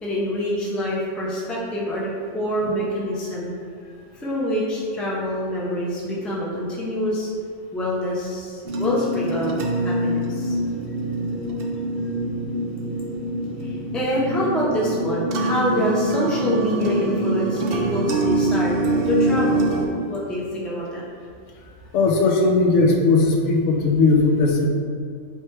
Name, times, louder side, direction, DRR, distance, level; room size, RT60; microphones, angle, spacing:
voice 1, 0.0-3.6 4.1-7.3 7.7-10.6 13.6-19.6 20.1-21.0, equal, ahead, -5 dB, 0.4 m, -26 dB
sound 1, 8.6-19.9, right 1 dB, 60° right, 0.7 m, -24 dB
voice 2, 21.9-24.7, left 3 dB, 75° left, 1 dB, 0.9 m, -18 dB
3.3 x 3.2 x 4.3 m, 2.3 s
omnidirectional pair, 1.3 m